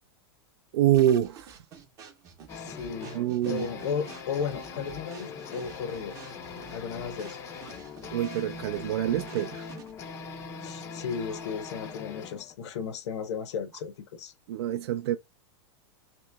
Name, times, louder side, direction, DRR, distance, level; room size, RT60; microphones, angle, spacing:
voice 1, 0.7-1.6 3.1-3.7 8.1-9.7 14.5-15.2, right 12 dB, 65° right, 0.4 m, -26 dB
sound 1, 0.9-10.1, right 7 dB, 25° right, 0.7 m, -49 dB
voice 2, 2.5-3.2 3.4-6.2 6.7-7.4 10.5-14.3, left 6 dB, 80° left, 0.8 m, -35 dB
sound 2, 2.5-12.6, left 5 dB, 20° left, 0.4 m, -41 dB
3.0 x 2.9 x 3.3 m
supercardioid pair, 165°, 14 cm